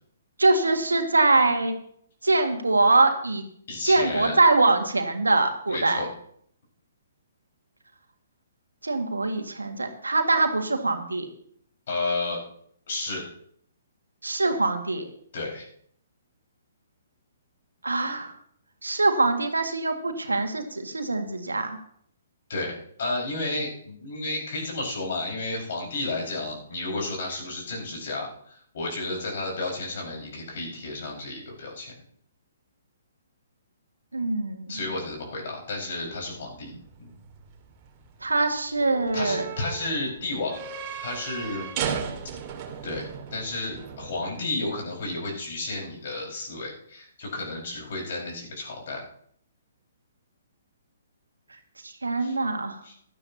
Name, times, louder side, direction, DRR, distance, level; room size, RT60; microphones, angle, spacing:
voice 1, 0.4-1.8 2.2-3.4 3.8-6.0 8.8-11.3 14.2-15.1 17.8-18.4 18.8-21.8 34.1-34.9 38.2-39.5 51.5-52.8, right 2 dB, 80° right, 5 dB, 1.8 m, -23 dB
voice 2, 3.7-4.3 5.7-6.1 11.9-12.4 12.9-13.3 15.3-15.7 22.5-31.9 34.7-36.7 37.0-37.1 39.1-40.6 41.0-41.7 42.8-49.0 52.2-52.3 52.8-52.9, left 2 dB, 55° left, -1 dB, 5.1 m, -32 dB
sound 1, 36.1-44.4, right 7 dB, 35° right, 2.1 m, -37 dB
16.5 x 12.0 x 2.9 m, 0.65 s
figure-of-eight pair, 125°, 0 cm